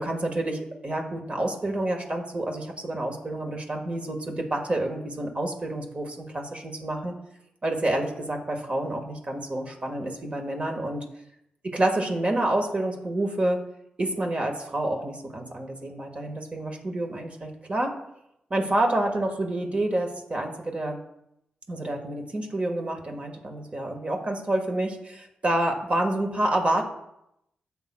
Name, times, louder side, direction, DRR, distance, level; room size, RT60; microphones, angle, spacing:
voice 1, 0.0-7.2 7.6-11.0 11.7-13.6 14.0-17.9 18.5-21.0 21.7-26.8, right 1 dB, 40° right, 2 dB, 1.4 m, -28 dB
10.5 x 7.3 x 2.2 m, 0.80 s
cardioid pair, 50°, 3 cm